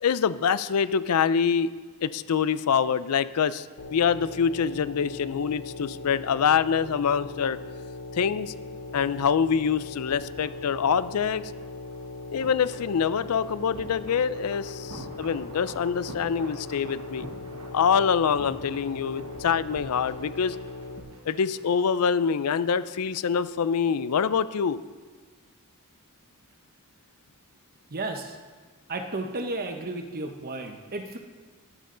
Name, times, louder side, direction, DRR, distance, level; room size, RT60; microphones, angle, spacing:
voice 1, 0.0-1.7 2.0-7.6 8.1-8.5 8.9-11.4 12.3-17.3 17.7-20.6 21.2-24.8, left 7 dB, 80° left, 16 dB, 0.4 m, -25 dB
sound 1, 3.8-21.0, left 2 dB, 55° left, 1.1 m, -40 dB
sound 2, 8.6-22.4 22.6-22.8, right 1 dB, 80° right, 1.6 m, -48 dB
voice 2, 27.9-28.4 28.9-31.2, right 2 dB, 40° right, 5 dB, 1.0 m, -33 dB
12.0 x 9.9 x 3.9 m, 1.4 s
head